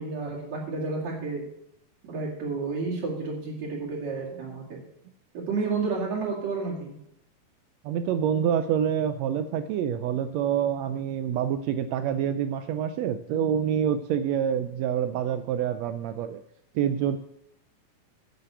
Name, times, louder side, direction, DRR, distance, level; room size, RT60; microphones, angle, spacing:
voice 1, 0.0-1.4 2.0-4.8 5.3-6.9, right 4 dB, 60° right, -7 dB, 3.6 m, -31 dB
voice 2, 7.8-16.4 16.7-17.2, right 9 dB, 80° right, 10 dB, 1.6 m, -27 dB
9.7 x 6.8 x 8.0 m, 0.78 s
omnidirectional pair, 3.5 m